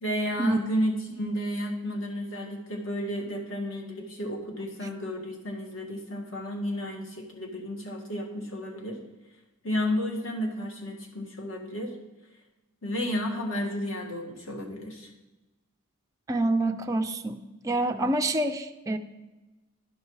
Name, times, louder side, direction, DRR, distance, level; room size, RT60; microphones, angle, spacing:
voice 1, 0.0-9.0 9.6-11.9 12.8-15.1, equal, 65° left, 1 dB, 1.7 m, -32 dB
voice 2, 16.3-19.0, right 2 dB, 15° right, 4 dB, 0.3 m, -27 dB
11.5 x 5.5 x 4.7 m, 1.1 s
head